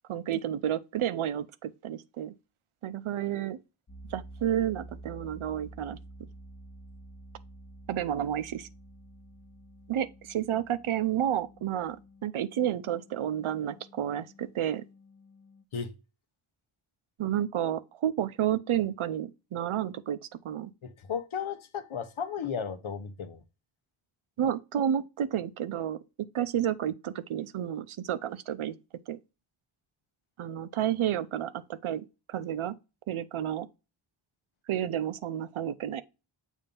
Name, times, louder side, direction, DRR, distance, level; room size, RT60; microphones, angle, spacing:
voice 1, 0.1-2.3 2.8-3.6 4.1-6.0 7.9-8.7 9.9-12.0 12.2-14.8 17.2-20.2 20.4-20.7 24.4-26.0 26.3-28.8 29.1-29.2 30.4-32.7 33.1-33.7 34.7-36.0, right 10 dB, 90° right, 0.7 m, -31 dB
sound 1, 3.9-15.6, right 1 dB, 30° left, 0.9 m, -50 dB
voice 2, 20.8-23.4, left 7 dB, 80° left, 1.0 m, -35 dB
7.2 x 2.7 x 5.3 m
wide cardioid pair, 100°, 48 cm